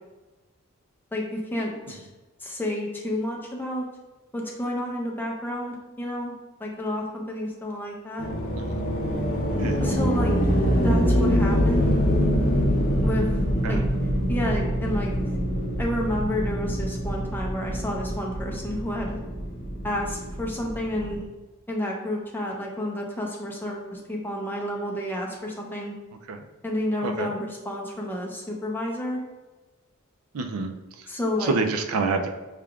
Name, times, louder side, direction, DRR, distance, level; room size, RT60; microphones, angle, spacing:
voice 1, 1.1-2.1 2.4-3.9 4.3-6.3 6.6-8.3 9.8-10.4 10.8-12.0 13.0-13.4 13.7-13.8 14.3-15.1 15.8-19.2 19.8-21.3 21.7-25.9 26.6-29.2 31.1-31.6, left 1 dB, 10° left, -1 dB, 0.6 m, -30 dB
sound 1, 8.2-21.2, equal, 40° left, 0.8 m, -25 dB
voice 2, 30.3-30.7 31.4-32.3, right 4 dB, 90° right, 6 dB, 0.4 m, -27 dB
5.7 x 3.4 x 2.4 m, 1.2 s
head